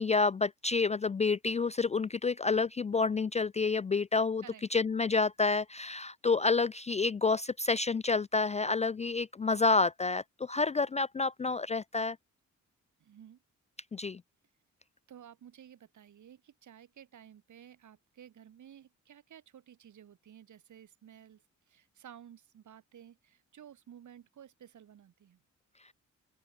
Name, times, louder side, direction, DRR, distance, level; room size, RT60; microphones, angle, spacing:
voice 1, 0.0-4.4 4.7-12.2 13.9-14.2, left 4 dB, 25° left, 0.4 m, -29 dB
voice 2, 13.0-13.4 15.1-25.4, right 9 dB, 75° right, 7.0 m, -54 dB
open air
cardioid pair, 105°, 30 cm